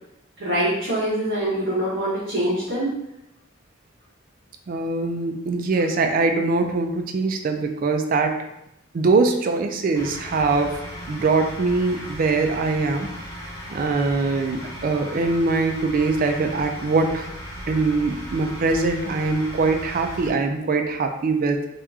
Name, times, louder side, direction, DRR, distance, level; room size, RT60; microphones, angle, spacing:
voice 1, 0.4-2.9, right 1 dB, 60° right, -9 dB, 0.9 m, -24 dB
voice 2, 4.7-8.4 8.9-10.8 11.1-13.1 13.7-17.3 17.7-21.6, right 3 dB, 45° right, 5 dB, 0.3 m, -22 dB
sound 1, 10.0-20.3, equal, 15° left, 1.0 m, -37 dB
2.8 x 2.3 x 3.5 m, 0.83 s
head